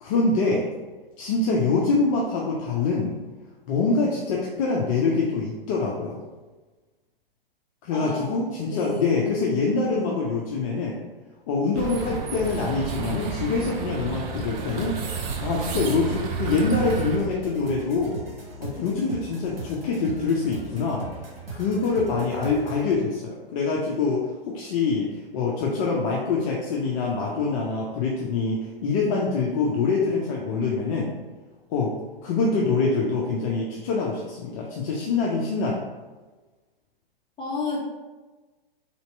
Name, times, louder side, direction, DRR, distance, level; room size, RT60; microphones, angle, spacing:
voice 1, 0.0-0.7 1.2-3.2 3.7-6.2 7.8-11.0 11.5-15.0 15.4-18.2 18.6-21.0 21.5-31.1 31.7-31.9 32.2-35.8, left 4 dB, 35° left, -3 dB, 0.6 m, -25 dB
voice 2, 7.9-8.4 8.7-9.1 37.4-37.8, left 3 dB, 15° left, -3 dB, 0.9 m, -31 dB
sound 1, 11.7-17.2, right 5 dB, 20° right, 0.3 m, -31 dB
sound 2, 14.5-22.9, right 3 dB, 80° right, 1.3 m, -39 dB
3.7 x 2.8 x 4.1 m, 1.3 s
hypercardioid pair, 120°, 29 cm